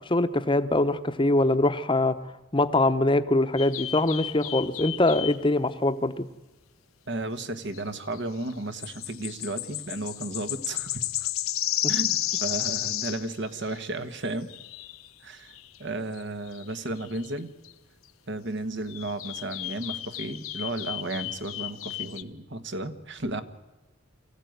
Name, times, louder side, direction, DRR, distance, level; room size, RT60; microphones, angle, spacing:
voice 1, 0.1-2.1 2.5-6.2, left 2 dB, 25° left, 10 dB, 0.9 m, -23 dB
sound 1, 3.6-5.5 7.7-7.8 8.1-8.2 8.5-13.9 14.5-15.1 15.5-15.8 16.1-16.2 16.5-17.4 17.6-17.7 18.9-22.2, left 13 dB, 90° left, 1.0 m, -33 dB
voice 2, 7.1-11.3 11.9-14.5 15.2-15.5 15.8-17.5 18.3-23.4, right 2 dB, 60° right, 10 dB, 1.4 m, -33 dB
24.0 x 15.5 x 9.3 m, 1.1 s
head